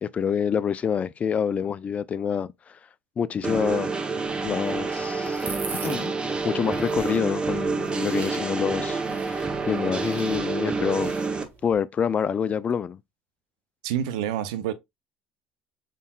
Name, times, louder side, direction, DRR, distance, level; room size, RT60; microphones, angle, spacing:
voice 1, 0.0-2.8 3.2-3.9 4.4-5.4 5.8-11.1 11.6-13.0, left 7 dB, 35° left, 0.4 m, -27 dB
sound 1, 3.4-11.4, right 4 dB, 25° right, 0.9 m, -28 dB
sound 2, 4.3-11.7, right 4 dB, 50° right, 1.7 m, -42 dB
voice 2, 13.8-14.7, right 10 dB, 85° right, 0.6 m, -27 dB
5.3 x 3.8 x 2.3 m
supercardioid pair, 80°, 4 cm